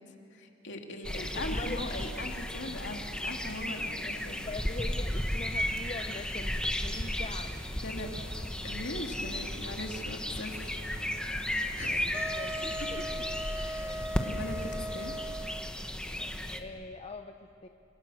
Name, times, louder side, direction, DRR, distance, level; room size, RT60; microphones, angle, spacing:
voice 1, 0.3-4.4 7.7-8.1 8.6-12.2 13.5-15.2, left 1 dB, 60° left, 2 dB, 2.8 m, -40 dB
sound 1, 1.0-16.6, left 1 dB, 5° left, 1.3 m, -34 dB
voice 2, 1.2-1.8 4.0-4.1 4.4-7.7 11.8-12.0 12.3-12.7 16.6-17.4 17.6-17.7, left 3 dB, 30° left, 6 dB, 0.7 m, -42 dB
sound 2, 5.0-15.0, equal, 65° right, 2.5 m, -50 dB
sound 3, 12.1-15.8, equal, 10° right, 0.6 m, -38 dB
29.5 x 26.5 x 6.5 m, 2.9 s
head